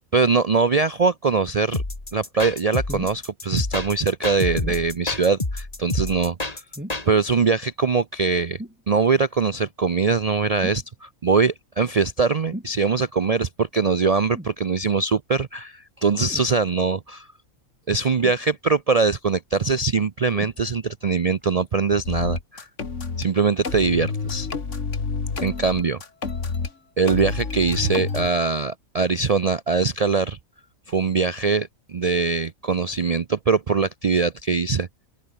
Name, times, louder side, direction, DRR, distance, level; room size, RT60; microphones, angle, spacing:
voice 1, 0.1-1.8 2.1-6.6 7.1-8.6 8.9-17.3 17.9-22.7 23.2-24.5 25.4-26.0 27.0-30.4 30.9-34.9, right 4 dB, 60° right, 0.3 m, -22 dB
sound 1, 1.7-7.1, left 2 dB, 25° left, 2.7 m, -28 dB
sound 2, 2.9-3.2 4.6-4.9 6.7-7.1 8.6-8.8 10.6-10.9 12.5-12.8 14.3-14.6 16.3-16.5 18.2-18.8 20.3-20.6 21.4-21.5, equal, 5° right, 3.1 m, -37 dB
sound 3, 22.0-23.3 23.6-26.7 27.1-28.3, left 4 dB, 55° left, 2.4 m, -28 dB
open air
omnidirectional pair, 1.5 m